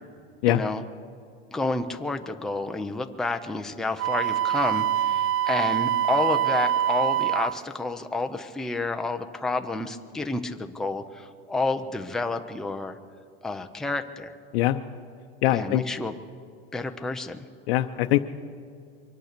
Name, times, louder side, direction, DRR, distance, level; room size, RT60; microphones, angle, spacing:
voice 1, 0.5-0.8 1.5-13.0 13.4-14.3 15.5-16.1 16.7-17.4, left 3 dB, ahead, 5 dB, 0.5 m, -30 dB
Wind instrument woodwind instrument, 4.0-7.5, right 11 dB, 60° right, 0.7 m, -24 dB
voice 2, 15.4-15.8 17.7-18.2, left 15 dB, 85° left, 6 dB, 0.7 m, -22 dB
24.0 x 9.0 x 6.7 m, 2.3 s
supercardioid pair, 145°, 29 cm